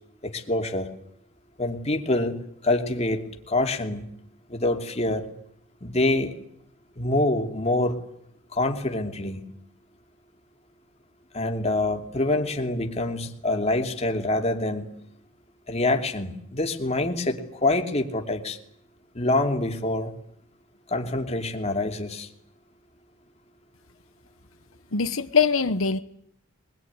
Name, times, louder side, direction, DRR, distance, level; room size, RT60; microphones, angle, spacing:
voice 1, 0.2-0.9 1.6-2.4 2.6-4.1 4.5-5.3 5.8-6.3 7.0-8.0 8.5-9.4 11.3-14.9 15.7-18.6 19.1-20.1 20.9-22.3, left 2 dB, 30° left, 4 dB, 2.8 m, -26 dB
voice 2, 24.9-26.0, left 5 dB, 80° left, 9 dB, 1.2 m, -22 dB
24.0 x 21.5 x 9.7 m, 0.74 s
head